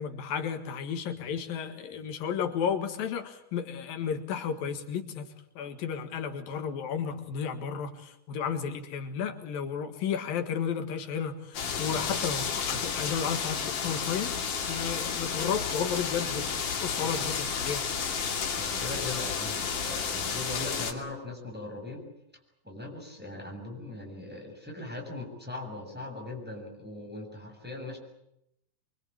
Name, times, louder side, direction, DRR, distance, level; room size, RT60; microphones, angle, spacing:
voice 1, 0.0-5.3 5.6-17.8, left 7 dB, 85° left, 7 dB, 3.5 m, -33 dB
sound 1, 11.5-20.9, left 6 dB, 65° left, 4.1 m, -32 dB
voice 2, 18.6-22.0 22.6-28.0, left 2 dB, ahead, 0 dB, 7.1 m, -40 dB
25.0 x 24.0 x 8.8 m, 0.80 s
omnidirectional pair, 4.0 m